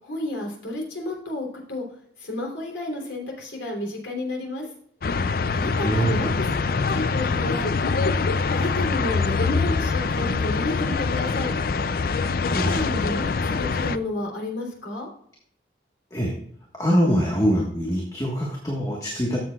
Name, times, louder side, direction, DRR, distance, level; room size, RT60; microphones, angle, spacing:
voice 1, 0.0-1.8 2.2-4.7 5.5-6.5 6.9-7.9 8.5-11.5 12.5-15.1, left 2 dB, 85° left, -1 dB, 3.4 m, -31 dB
sound 1, 5.0-14.0, left 4 dB, 50° left, 0.4 m, -24 dB
voice 2, 5.8-6.3 12.4-12.7 16.1-16.3 16.8-19.4, equal, 20° left, -2 dB, 1.5 m, -23 dB
13.0 x 7.5 x 2.4 m, 0.65 s
head